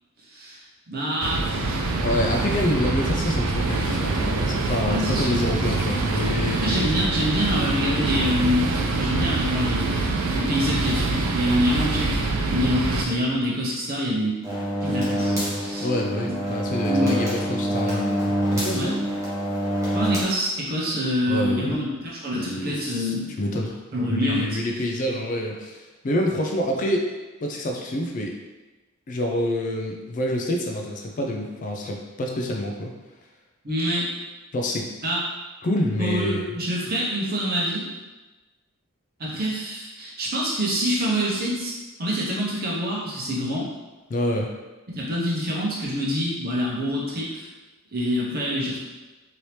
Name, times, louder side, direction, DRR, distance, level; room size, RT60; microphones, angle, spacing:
voice 1, 0.3-0.6 0.9-1.8 4.8-5.4 6.6-14.4 14.8-15.9 16.8-17.3 18.7-18.9 19.9-23.3 23.9-24.6 33.6-34.1 35.0-35.2 36.0-37.8 39.2-41.7 42.0-43.7 44.9-47.5 47.9-48.8, equal, 45° right, -5 dB, 0.8 m, -26 dB
sound 1, 1.2-13.0, right 3 dB, 70° right, 0.4 m, -25 dB
voice 2, 2.0-6.9 15.8-19.0 21.3-21.8 22.3-23.8 24.1-27.0 27.4-28.3 29.1-32.9 34.5-34.9 35.6-36.4 44.1-44.5, left 1 dB, 35° left, 1 dB, 0.3 m, -27 dB
sound 2, 14.4-20.2, equal, 15° right, 0.9 m, -26 dB
2.9 x 2.7 x 3.2 m, 1.2 s
head